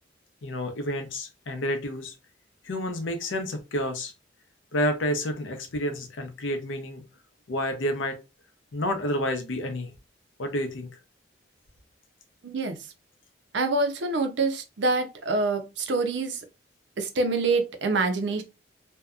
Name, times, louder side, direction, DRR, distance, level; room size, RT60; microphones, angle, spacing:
voice 1, 0.4-2.1 2.6-4.1 4.7-7.0 7.5-8.2 8.7-9.9 10.4-10.9, left 1 dB, 85° left, 0.6 m, -29 dB
voice 2, 12.4-12.8 13.5-16.4 17.0-18.4, right 3 dB, 70° right, 0.5 m, -26 dB
2.6 x 2.2 x 2.3 m
head